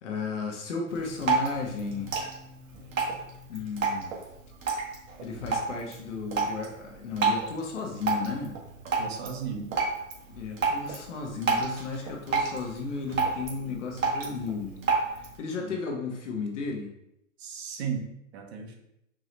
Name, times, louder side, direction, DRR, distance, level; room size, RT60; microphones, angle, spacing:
voice 1, 0.0-2.1 3.5-4.1 5.2-8.5 10.3-14.8 15.1-16.9, left 4 dB, 60° left, 2 dB, 1.2 m, -34 dB
Drip, 0.9-15.4, right 4 dB, 70° right, 1.5 m, -31 dB
voice 2, 9.0-9.7 15.6-15.8 17.4-18.7, right 6 dB, 50° right, 1 dB, 1.1 m, -35 dB
4.7 x 2.7 x 3.2 m, 0.81 s
hypercardioid pair, 135°, 41 cm